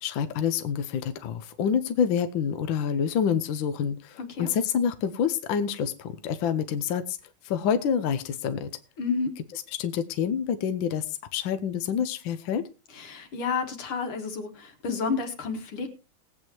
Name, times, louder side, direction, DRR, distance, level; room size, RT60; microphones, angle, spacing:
voice 1, 0.0-7.2 7.4-8.7 9.5-12.7, left 7 dB, 70° left, 10 dB, 1.5 m, -27 dB
voice 2, 4.2-4.5 9.0-9.3 12.9-15.9, left 5 dB, 85° left, 6 dB, 2.6 m, -30 dB
20.0 x 8.6 x 3.0 m, 0.29 s
omnidirectional pair, 2.3 m